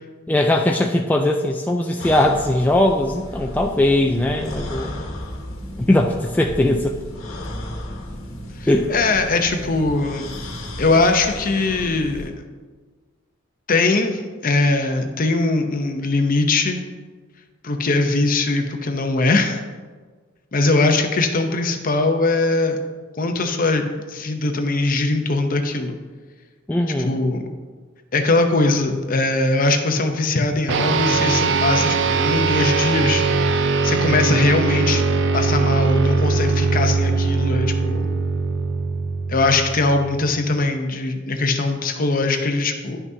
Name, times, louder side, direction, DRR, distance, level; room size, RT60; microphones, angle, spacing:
voice 1, 0.3-5.0 5.9-6.9 8.7-8.9 26.7-27.2, left 1 dB, 10° left, 1 dB, 0.3 m, -19 dB
sound 1, 2.0-12.3, left 1 dB, 90° left, 1.2 m, -34 dB
voice 2, 8.6-10.3 10.8-12.3 13.7-16.8 17.6-19.6 20.5-22.8 23.2-25.9 27.0-27.4 28.1-35.0 35.3-38.1 39.3-43.0, left 3 dB, 45° left, 5 dB, 0.7 m, -21 dB
sound 2, 30.7-40.4, right 4 dB, 65° right, 0.5 m, -21 dB
10.5 x 5.8 x 2.7 m, 1.4 s
head